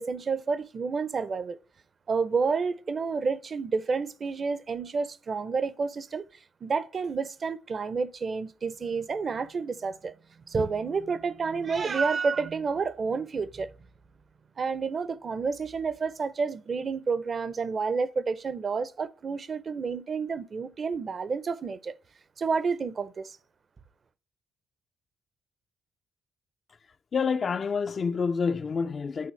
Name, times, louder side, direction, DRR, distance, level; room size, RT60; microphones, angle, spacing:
voice 1, 0.0-1.6 2.1-6.3 6.6-10.1 10.5-13.7 14.6-22.0 22.4-23.4, right 5 dB, 40° right, 0.6 m, -30 dB
voice 2, 27.1-29.3, left 5 dB, 45° left, 0.4 m, -28 dB
8.4 x 4.1 x 3.2 m
cardioid pair, 90°, 0 cm